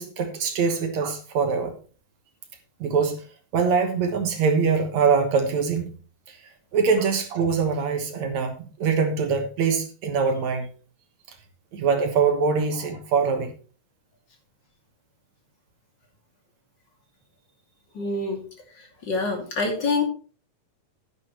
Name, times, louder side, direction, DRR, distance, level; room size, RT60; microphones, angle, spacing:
voice 1, 0.0-1.7 2.8-3.2 3.5-5.9 6.3-6.4 6.7-10.7 11.7-13.5, right 5 dB, 60° right, 5 dB, 2.3 m, -23 dB
voice 2, 17.9-18.4 19.0-20.0, left 3 dB, 35° left, 2 dB, 3.0 m, -25 dB
10.5 x 10.5 x 3.2 m, 0.38 s
omnidirectional pair, 4.1 m